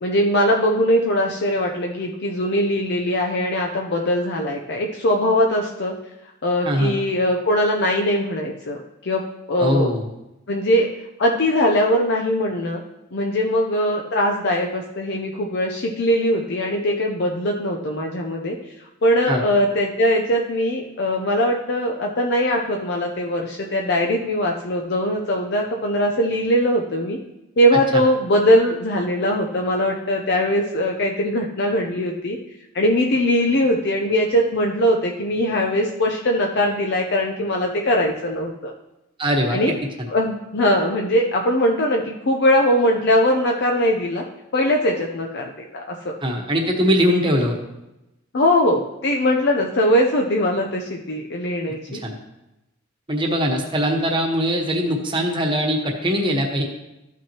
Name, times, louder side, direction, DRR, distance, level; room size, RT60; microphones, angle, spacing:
voice 1, 0.0-5.9 6.4-9.9 10.5-10.9 11.2-12.8 13.1-18.6 19.0-27.2 27.6-32.4 32.7-38.7 39.5-39.7 40.1-44.2 44.5-46.1 48.3-52.0, equal, 55° left, 1 dB, 0.7 m, -21 dB
voice 2, 6.6-7.0 9.6-10.0 19.3-19.4 27.9-28.0 39.2-39.6 40.0-40.1 46.2-47.6 51.9-52.1 53.1-56.6, equal, 25° right, 1 dB, 1.2 m, -21 dB
13.5 x 5.9 x 3.0 m, 0.94 s
head